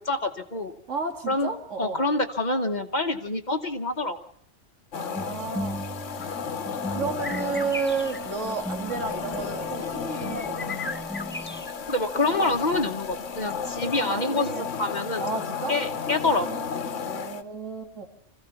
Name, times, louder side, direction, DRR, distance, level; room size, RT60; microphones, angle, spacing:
voice 1, 0.0-0.7 1.3-1.5 1.8-4.2 11.9-15.2 15.7-16.8, left 2 dB, 40° left, 7 dB, 1.1 m, -27 dB
voice 2, 0.9-2.0 4.9-5.8 6.9-10.7 14.1-14.7 15.2-15.8 17.0-18.1, right 4 dB, 75° right, 5 dB, 2.3 m, -32 dB
sound 1, 4.9-17.4, left 6 dB, 80° left, 1.4 m, -33 dB
sound 2, 5.1-11.6, equal, 5° right, 1.1 m, -38 dB
sound 3, 7.2-12.1 12.4-13.4, left 3 dB, 10° left, 0.5 m, -38 dB
26.0 x 15.5 x 7.0 m, 0.72 s
omnidirectional pair, 1.3 m